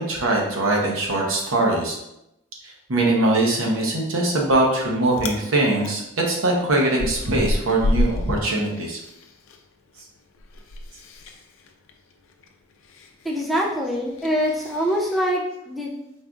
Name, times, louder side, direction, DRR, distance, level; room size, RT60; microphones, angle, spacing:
voice 1, 0.0-2.0 2.9-6.0 6.3-9.0, right 2 dB, 90° right, -1 dB, 1.0 m, -21 dB
Chewing mastication, 4.4-4.8 5.1-5.4 5.8-9.6 9.9-15.3, left 1 dB, 75° left, 0.4 m, -30 dB
voice 2, 13.2-15.9, equal, ahead, -2 dB, 0.4 m, -24 dB
4.4 x 3.4 x 2.5 m, 0.85 s
head